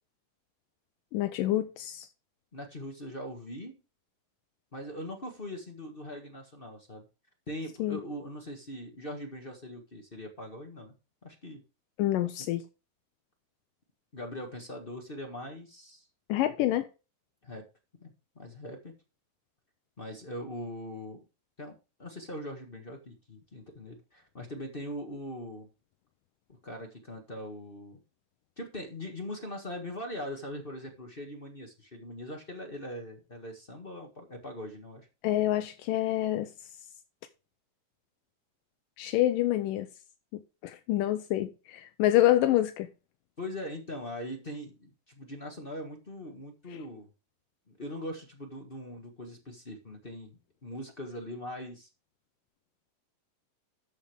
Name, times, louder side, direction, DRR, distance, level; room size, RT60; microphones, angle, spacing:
voice 1, 1.1-2.1 7.8-8.0 12.0-12.6 16.3-16.9 35.2-36.5 39.0-39.9 40.3-42.9, left 14 dB, 80° left, 2.3 m, -27 dB
voice 2, 2.5-3.8 4.7-7.1 7.5-11.0 11.2-11.6 12.4-12.5 14.1-16.1 17.4-17.6 18.0-18.9 20.0-21.2 21.6-21.7 22.0-25.7 26.6-28.0 28.6-35.1 43.4-47.1 47.7-51.9, left 1 dB, 40° left, 0.8 m, -41 dB
12.5 x 7.3 x 3.5 m
omnidirectional pair, 4.0 m